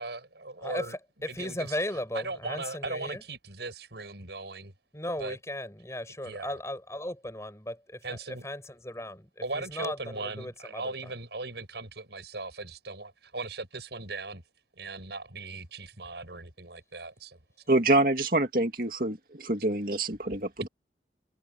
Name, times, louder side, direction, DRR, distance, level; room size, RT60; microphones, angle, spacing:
voice 1, 0.0-1.0 1.3-1.8 2.1-4.7 5.2-5.4 6.2-6.6 8.0-8.4 9.4-14.4 14.8-17.4, right 3 dB, 75° right, 5.8 m, -38 dB
voice 2, 0.6-3.2 4.9-11.1, left 1 dB, 15° left, 7.7 m, -37 dB
voice 3, 17.7-20.7, right 2 dB, 50° right, 2.5 m, -26 dB
head